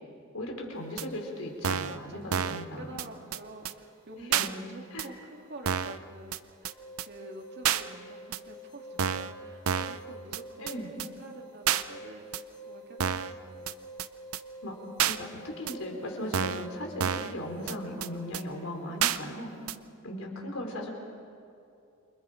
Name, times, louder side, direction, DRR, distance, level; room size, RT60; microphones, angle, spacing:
voice 1, 0.3-3.0 4.3-4.6 4.9-5.1 10.6-10.9 14.6-14.7 15.1-19.5 20.0-20.9, left 1 dB, 70° left, 1 dB, 4.3 m, -37 dB
sound 1, 1.0-1.1 1.6-2.0 2.3-2.6 3.0-3.1 3.3-3.4 3.7-3.8 4.3-4.5 5.0-5.1 5.7-6.0 6.3-6.4 6.7-6.8 7.0-7.1 7.6-7.8 8.3-8.4 9.0-9.3 9.7-10.0 10.3-10.4 10.7-10.8 11.0-11.1 11.7-11.8 12.3-12.4 13.0-13.3 13.7-13.8 14.0-14.1 14.3-14.4 15.0-15.2 15.7-15.8 16.3-16.7 17.0-17.3 17.7-17.8 18.0-18.1 18.3-18.4 19.0-19.2 19.7-19.8, right 9 dB, 75° right, 0.6 m, -29 dB
voice 2, 1.7-13.8, right 2 dB, 50° right, 2 dB, 2.4 m, -47 dB
sound 2, 6.7-18.4, right 1 dB, 20° left, 1.1 m, -47 dB
29.0 x 25.0 x 5.1 m, 2.6 s
head